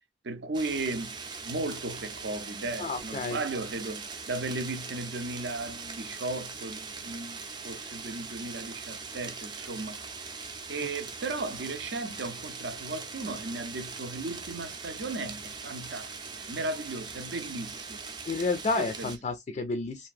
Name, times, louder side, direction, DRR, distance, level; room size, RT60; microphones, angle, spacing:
voice 1, 0.2-10.0 10.7-18.1 18.8-19.1, right 2 dB, 70° right, 0.6 m, -36 dB
sound 1, 0.5-19.2, right 4 dB, 25° right, 0.5 m, -41 dB
voice 2, 2.8-3.4 18.2-20.1, left 3 dB, 40° left, 0.3 m, -30 dB
2.7 x 2.3 x 2.4 m
head